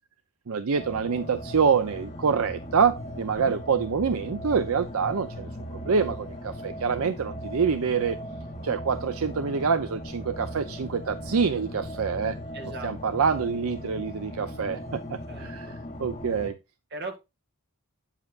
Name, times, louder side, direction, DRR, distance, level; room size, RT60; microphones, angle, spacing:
voice 1, 0.5-5.5 5.9-8.2 8.6-12.4 12.8-15.7 16.0-16.5, right 6 dB, 70° right, 0.5 m, -26 dB
sound 1, 0.7-16.5, equal, 30° left, 2.4 m, -38 dB
voice 2, 12.5-13.2 15.3-15.8 16.9-17.2, right 2 dB, 50° right, 1.9 m, -39 dB
9.0 x 7.3 x 2.4 m
head